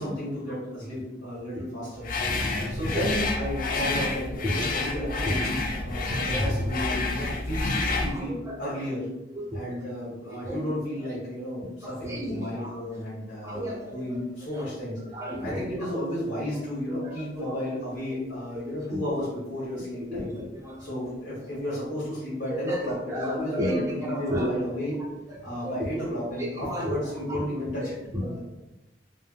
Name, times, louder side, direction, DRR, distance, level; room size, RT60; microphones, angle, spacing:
voice 1, 0.0-2.1 2.7-9.0 9.5-15.0 15.4-20.3 20.8-25.0 25.4-27.9, equal, 75° left, -9 dB, 1.3 m, -33 dB
sound 1, 2.0-8.2, left 3 dB, 50° left, 0.4 m, -29 dB
voice 2, 2.2-3.1 3.6-3.7 4.4-4.8 5.9-6.7 8.0-8.6 9.3-9.8 10.2-10.7 11.1-11.2 11.8-12.7 13.4-14.2 14.5-14.7 15.1-15.9 17.0-17.6 18.1-18.3 18.5-19.0 20.1-21.1 21.4-21.5 22.5-24.5 25.3-25.8 26.4-27.0 27.3-27.4 27.8-28.4, equal, 15° right, -2 dB, 0.6 m, -33 dB
3.3 x 2.1 x 2.4 m, 0.98 s
head